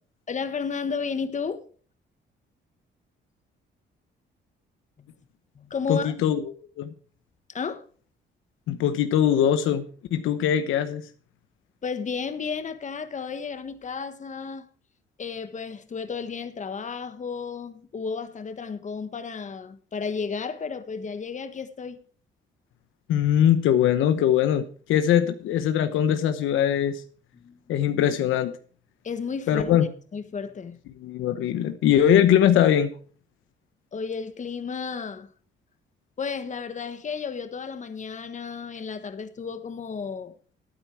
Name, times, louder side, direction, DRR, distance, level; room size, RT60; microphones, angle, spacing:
voice 1, 0.3-1.7 5.0-5.1 5.5-6.1 7.5-7.8 11.8-14.7 15.2-22.0 27.4-27.6 29.0-29.7 30.1-30.8 33.9-35.3 36.2-40.3, left 5 dB, 40° left, 1.3 m, -33 dB
voice 2, 5.9-6.4 6.8-6.9 8.7-9.8 10.1-11.0 23.1-24.6 24.9-27.0 27.7-28.5 29.5-29.9 31.0-32.9, left 10 dB, 85° left, 1.0 m, -21 dB
13.0 x 9.2 x 4.7 m
cardioid pair, 90°, 20 cm